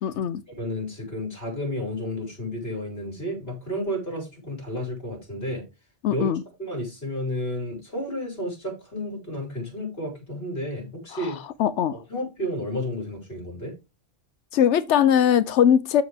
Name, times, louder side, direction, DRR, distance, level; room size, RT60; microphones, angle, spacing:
voice 1, 0.0-0.4 6.0-6.4 11.1-12.0 14.5-16.0, left 9 dB, 85° left, 1.0 m, -21 dB
voice 2, 0.6-5.6 6.1-6.3 6.6-11.4 12.1-13.7, left 1 dB, 60° left, 5.5 m, -31 dB
13.0 x 5.1 x 3.5 m
omnidirectional pair, 1.1 m